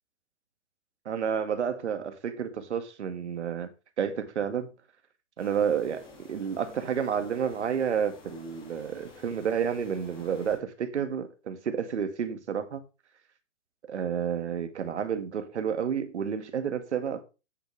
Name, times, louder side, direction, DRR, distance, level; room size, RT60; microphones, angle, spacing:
voice 1, 1.1-3.7 4.0-4.7 5.4-12.8 13.9-17.2, right 7 dB, 65° right, 2.0 m, -30 dB
sound 1, 5.4-10.6, left 3 dB, 15° left, 2.5 m, -50 dB
10.0 x 8.7 x 3.4 m
hypercardioid pair, 165°, 37 cm